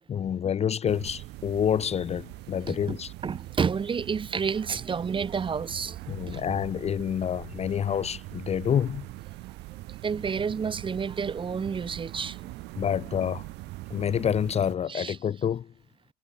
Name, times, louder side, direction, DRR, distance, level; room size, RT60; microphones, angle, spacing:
voice 1, 0.1-3.1 6.1-9.1 12.8-13.5 13.9-15.7, left 8 dB, 40° left, 0.7 m, -28 dB
sound 1, 0.9-14.8, right 21 dB, 90° right, 2.2 m, -42 dB
voice 2, 2.7-6.4 9.9-12.5 14.9-15.2, right 6 dB, 30° right, 1.0 m, -30 dB
cardioid pair, 110°, 17 cm